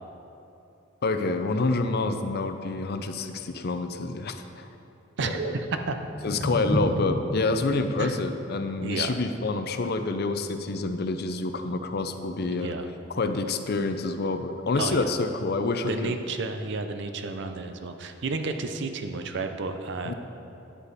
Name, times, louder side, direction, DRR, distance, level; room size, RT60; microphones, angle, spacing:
voice 1, 1.0-4.7 5.2-5.5 6.2-12.8 13.1-16.1 20.0-20.1, left 3 dB, 55° left, 8 dB, 0.5 m, -27 dB
voice 2, 5.2-6.0 8.0-8.2 8.8-9.2 12.5-12.9 14.8-15.1 15.9-20.1, right 3 dB, 60° right, 7 dB, 0.6 m, -32 dB
sound 1, 5.6-11.7, equal, 10° left, 0.9 m, -35 dB
9.8 x 8.2 x 4.1 m, 2.8 s
head